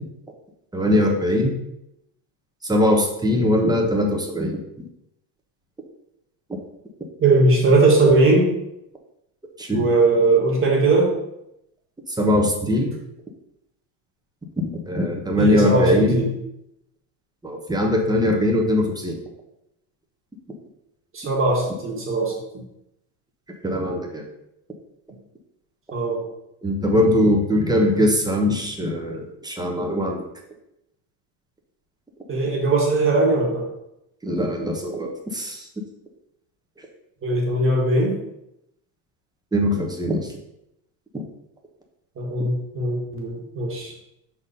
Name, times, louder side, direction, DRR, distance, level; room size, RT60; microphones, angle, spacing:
voice 1, 0.7-1.5 2.6-4.6 9.6-9.9 12.2-12.9 14.9-16.2 17.4-19.2 23.6-24.2 26.6-30.2 34.2-35.6 39.5-40.3, left 1 dB, 10° right, 1 dB, 1.0 m, -21 dB
voice 2, 7.2-8.5 9.7-11.2 15.4-16.3 21.1-22.6 25.9-26.2 32.3-33.7 37.2-38.2 42.2-43.9, right 2 dB, 30° right, -2 dB, 1.7 m, -19 dB
5.9 x 4.2 x 5.2 m, 0.82 s
cardioid pair, 135°, 44 cm